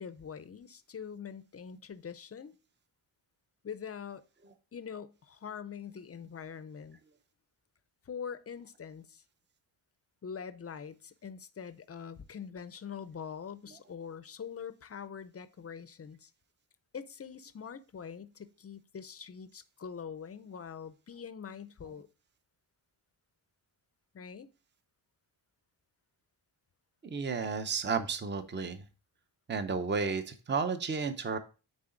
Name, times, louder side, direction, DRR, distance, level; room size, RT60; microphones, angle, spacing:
voice 1, 0.0-2.5 3.6-4.2 4.7-7.0 8.1-9.2 10.2-16.3 16.9-22.1 24.1-24.5, left 7 dB, 30° left, 0.5 m, -44 dB
voice 2, 27.0-28.8 29.5-31.4, right 5 dB, 25° right, 0.7 m, -32 dB
9.6 x 4.0 x 3.8 m
wide cardioid pair, 125°, 47 cm